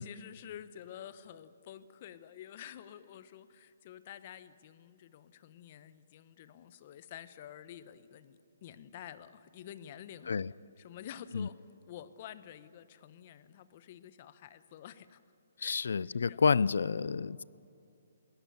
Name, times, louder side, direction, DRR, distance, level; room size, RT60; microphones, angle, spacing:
voice 1, 0.0-10.5 10.8-11.6 11.9-15.2 15.6-16.0 16.3-16.4, left 10 dB, 40° left, 1.0 m, -49 dB
voice 2, 15.6-17.4, left 5 dB, 75° left, 0.4 m, -29 dB
22.0 x 18.0 x 7.1 m
hypercardioid pair, 155°, 0 cm